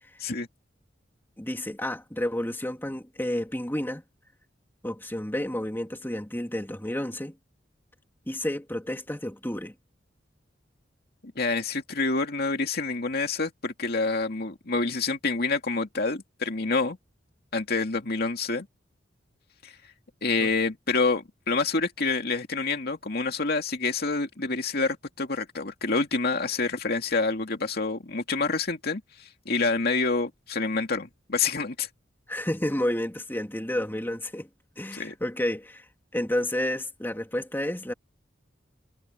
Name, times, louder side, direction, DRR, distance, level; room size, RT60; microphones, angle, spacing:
voice 1, 1.4-4.0 4.8-7.4 8.3-9.7 20.4-20.5 32.3-34.5 34.8-35.9 36.1-37.9, left 1 dB, 10° left, 2.8 m, -30 dB
voice 2, 11.4-17.0 17.5-18.7 19.6-19.7 20.2-31.9 34.9-35.1, left 3 dB, 60° left, 2.4 m, -27 dB
head